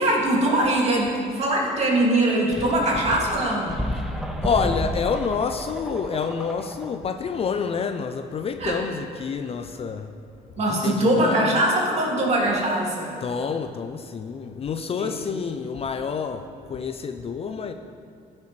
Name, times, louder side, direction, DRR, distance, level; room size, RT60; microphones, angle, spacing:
voice 1, 0.0-3.8 8.6-8.8 10.6-13.1 15.0-15.1, right 1 dB, 40° right, -2 dB, 2.3 m, -22 dB
sound 1, 2.5-7.1, equal, ahead, 0.8 m, -31 dB
voice 2, 4.4-10.1 10.8-11.7 13.2-17.7, left 6 dB, 35° left, 7 dB, 0.5 m, -28 dB
14.5 x 7.4 x 3.2 m, 2.5 s
cardioid pair, 110°, 17 cm